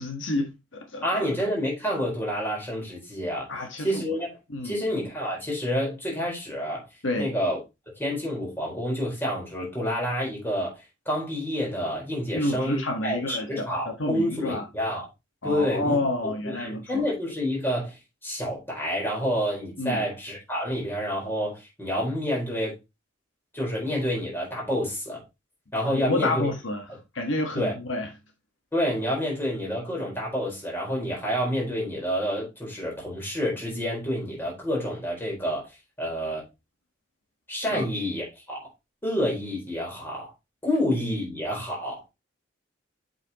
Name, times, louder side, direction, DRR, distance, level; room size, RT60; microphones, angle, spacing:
voice 1, 0.0-1.2 3.5-4.0 4.5-4.8 7.0-7.3 12.3-14.6 15.4-17.1 19.8-20.0 25.9-26.9 27.1-28.1 37.7-37.9, left 1 dB, 75° left, 1.4 m, -29 dB
voice 2, 1.0-3.5 3.8-4.3 4.6-6.8 7.2-7.6 8.0-10.8 11.1-15.0 15.4-16.0 16.4-22.8 23.5-25.2 25.7-26.5 27.6-27.7 28.7-35.7 36.0-36.4 37.5-38.7 39.0-40.3 40.6-42.1, equal, 10° left, 4.3 m, -28 dB
7.7 x 6.1 x 3.0 m
head